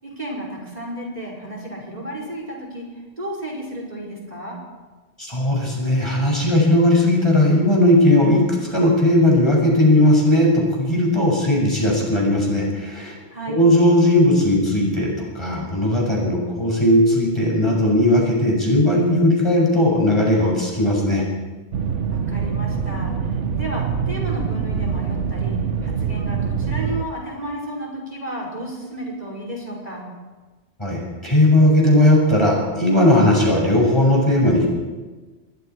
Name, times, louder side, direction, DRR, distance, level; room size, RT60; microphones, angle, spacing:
voice 1, 0.0-4.6 13.3-13.6 22.1-30.1, right 1 dB, 35° right, -1 dB, 5.4 m, -32 dB
voice 2, 5.2-8.4 8.7-13.2 13.5-21.2 30.8-34.7, left 1 dB, 25° left, -2 dB, 6.8 m, -17 dB
sound 1, 21.7-27.1, right 6 dB, 90° right, 1.3 m, -24 dB
28.5 x 22.0 x 4.8 m, 1.3 s
omnidirectional pair, 1.2 m